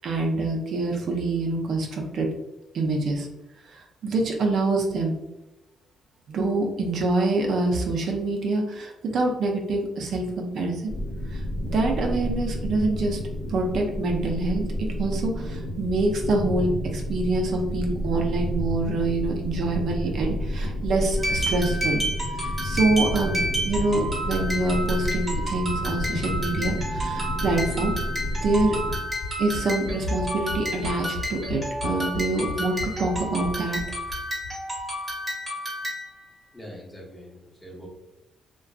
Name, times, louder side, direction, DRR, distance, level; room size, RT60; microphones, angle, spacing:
voice 1, 0.0-2.3 2.7-3.3 3.7-5.2 6.3-10.9 11.3-13.2 13.5-22.0 22.4-27.9 28.4-28.7 29.4-33.8, right 2 dB, 65° right, 1 dB, 0.4 m, -26 dB
sound 1, 10.9-29.0, left 1 dB, 80° left, 0.8 m, -30 dB
sound 2, 21.2-36.2, equal, 15° right, 0.9 m, -31 dB
sound 3, 23.1-34.5 34.8-34.9 35.1-35.2, left 1 dB, 55° left, 1.1 m, -36 dB
voice 2, 36.5-37.9, equal, 15° left, -2 dB, 0.8 m, -43 dB
2.5 x 2.2 x 2.3 m, 0.97 s
cardioid pair, 90°, 0 cm